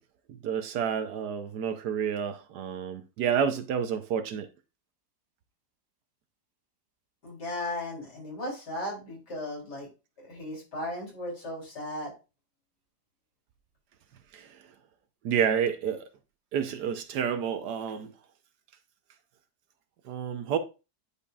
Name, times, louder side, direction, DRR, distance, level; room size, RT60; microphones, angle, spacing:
voice 1, 0.4-4.5 15.2-16.0 16.5-18.1 20.1-20.6, right 8 dB, 70° right, 1.2 m, -29 dB
voice 2, 7.2-9.9 10.2-12.1, left 1 dB, 65° left, 3.8 m, -36 dB
10.0 x 5.2 x 2.3 m
omnidirectional pair, 1.9 m